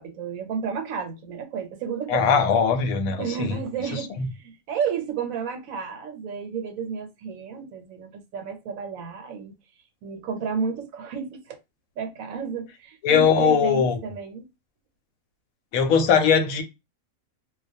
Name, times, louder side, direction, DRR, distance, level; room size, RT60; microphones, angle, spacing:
voice 1, 0.0-2.5 3.2-9.5 10.0-11.6 12.0-14.5, right 6 dB, 80° right, 1.0 m, -32 dB
voice 2, 2.1-3.6 4.2-4.3 13.0-13.9 15.7-16.6, left 6 dB, 80° left, 1.0 m, -20 dB
2.3 x 2.2 x 2.5 m
omnidirectional pair, 1.4 m